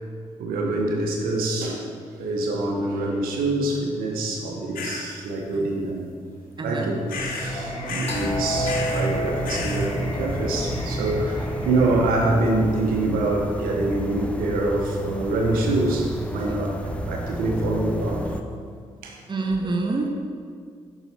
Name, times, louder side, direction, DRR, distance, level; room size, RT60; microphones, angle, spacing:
voice 1, 0.4-1.8 2.2-6.1 6.6-18.3 19.0-19.2, right 2 dB, 75° right, 1 dB, 0.9 m, -25 dB
sound 1, 4.8-5.1 7.1-7.5 7.9-8.3 8.6-9.1 9.4-9.9, left 5 dB, 70° left, 0.9 m, -32 dB
voice 2, 5.5-5.8 6.6-6.9 19.3-20.1, right 3 dB, 30° right, 2 dB, 0.9 m, -27 dB
Singing, 7.1-12.1, right 1 dB, 45° left, 1.8 m, -29 dB
sound 2, 8.1-18.4, equal, 10° left, 0.6 m, -32 dB
6.9 x 5.9 x 4.3 m, 2.1 s
hypercardioid pair, 40°, 15 cm